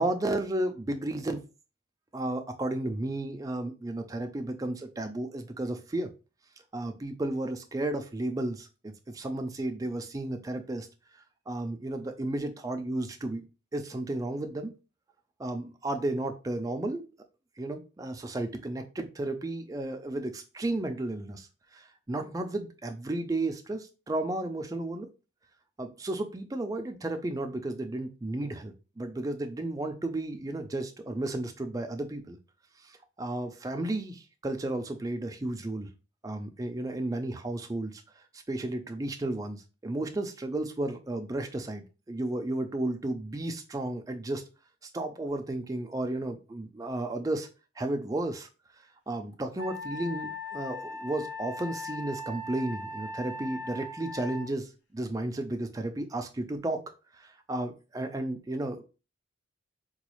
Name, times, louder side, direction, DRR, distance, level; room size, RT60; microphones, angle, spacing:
voice 1, 0.0-1.4 2.1-6.1 6.7-10.9 11.5-13.4 13.7-14.7 15.4-17.1 17.6-25.1 25.8-32.4 32.8-35.9 36.2-44.4 44.8-47.5 47.8-48.5 49.1-56.8 57.1-58.8, right 2 dB, 20° right, 6 dB, 0.3 m, -33 dB
Wind instrument woodwind instrument, 49.6-54.5, left 2 dB, 75° left, 0.9 m, -39 dB
4.0 x 2.3 x 3.0 m, 0.31 s
head